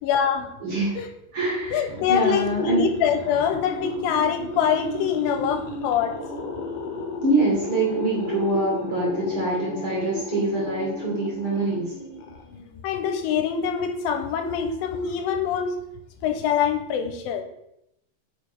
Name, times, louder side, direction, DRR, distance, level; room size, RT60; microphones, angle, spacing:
voice 1, 0.0-0.5 1.0-1.1 1.7-6.1 12.8-15.7 16.2-17.4, left 7 dB, 85° left, 7 dB, 2.4 m, -24 dB
voice 2, 0.6-1.0 1.3-2.9 7.2-11.9, right 2 dB, 50° right, -4 dB, 1.8 m, -25 dB
sound 1, 1.7-12.8, left 2 dB, 70° left, 2.4 m, -34 dB
9.1 x 4.9 x 3.4 m, 0.81 s
omnidirectional pair, 4.1 m